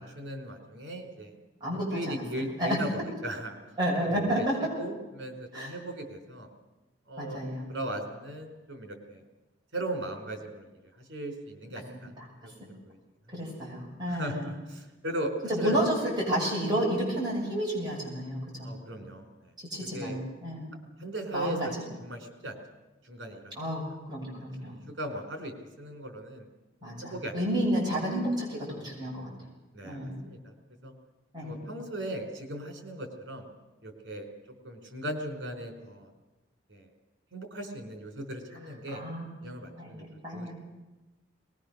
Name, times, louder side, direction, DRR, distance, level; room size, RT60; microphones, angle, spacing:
voice 1, 0.0-1.3 1.9-3.6 4.0-6.5 7.1-7.4 7.7-9.2 9.7-10.7 11.0-12.1 12.4-12.5 12.8-13.0 13.3-13.4 14.1-15.3 15.6-15.8 18.6-19.5 19.8-20.2 21.0-21.6 22.0-22.6 23.0-23.6 24.6-26.4 27.0-27.4 29.7-30.5 30.8-30.9 31.4-33.5 33.8-34.3 34.6-36.1 36.7-36.9 37.3-39.0 39.4-40.0 40.3-40.5, right 1 dB, 70° right, 5 dB, 4.5 m, -38 dB
voice 2, 1.6-2.8 3.8-4.5 5.5-5.7 7.2-7.7 12.2-12.5 13.3-14.5 15.4-18.7 19.7-20.7 21.3-21.7 23.6-23.8 24.1-24.8 26.8-29.3 29.8-30.2 31.3-31.6 38.9-39.2 39.8-40.5, equal, 25° right, -4 dB, 7.7 m, -31 dB
22.5 x 20.5 x 6.7 m, 1.1 s
head